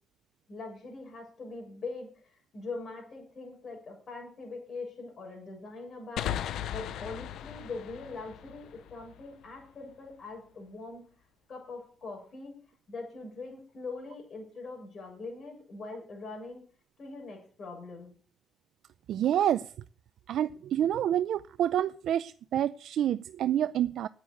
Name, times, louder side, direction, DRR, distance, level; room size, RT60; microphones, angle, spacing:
voice 1, 0.5-2.1 2.5-6.4 6.7-11.0 11.5-12.5 12.9-16.6 17.0-18.1, left 3 dB, 50° left, 7.0 m, -42 dB
sound 1, 6.2-9.6, left 11 dB, 75° left, 0.6 m, -37 dB
voice 2, 19.1-19.7 20.3-24.1, right 11 dB, 75° right, 0.5 m, -28 dB
9.3 x 8.9 x 8.4 m
cardioid pair, 90°, 0 cm